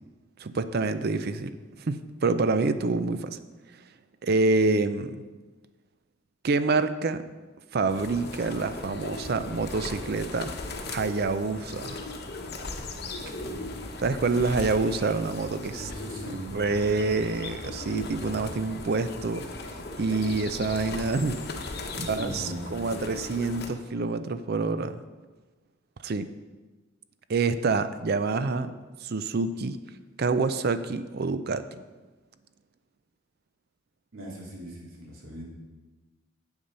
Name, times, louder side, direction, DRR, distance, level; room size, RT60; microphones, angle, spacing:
voice 1, 0.4-1.5 1.8-3.4 4.2-5.2 6.4-7.2 7.7-10.5 10.9-12.1 14.0-15.9 16.5-19.4 20.0-21.4 22.0-25.0 26.0-26.3 27.3-28.7 29.0-29.8 30.2-31.6, right 3 dB, 50° right, 12 dB, 0.4 m, -27 dB
sound 1, 7.9-23.7, left 2 dB, 50° left, 0.9 m, -38 dB
voice 2, 15.8-16.5 22.0-23.0 34.1-35.4, right 1 dB, 80° right, -3 dB, 2.6 m, -39 dB
8.0 x 7.1 x 5.4 m, 1.3 s
head